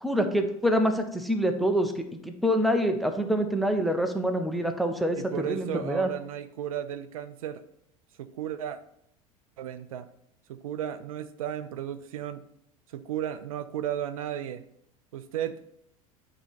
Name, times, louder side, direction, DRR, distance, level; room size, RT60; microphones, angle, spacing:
voice 1, 0.0-6.1, equal, ahead, 5 dB, 0.8 m, -26 dB
voice 2, 5.2-7.6 8.2-8.8 9.6-10.1 10.5-12.4 12.9-14.6 15.1-15.6, right 10 dB, 70° right, 11 dB, 0.5 m, -34 dB
8.9 x 3.2 x 4.2 m, 0.72 s
figure-of-eight pair, 75°, 18 cm